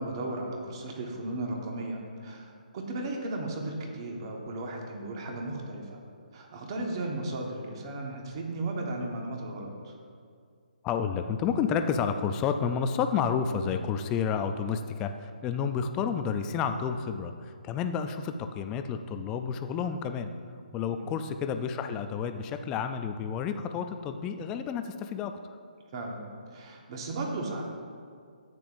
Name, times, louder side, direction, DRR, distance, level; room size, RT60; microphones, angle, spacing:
voice 1, 0.0-6.0 6.3-9.9 20.9-21.1 25.9-27.6, right 2 dB, 30° right, 1 dB, 1.4 m, -35 dB
voice 2, 10.8-20.3 20.7-25.3, left 6 dB, 10° left, 7 dB, 0.3 m, -30 dB
13.5 x 9.0 x 2.6 m, 2.2 s
hypercardioid pair, 165°, 5 cm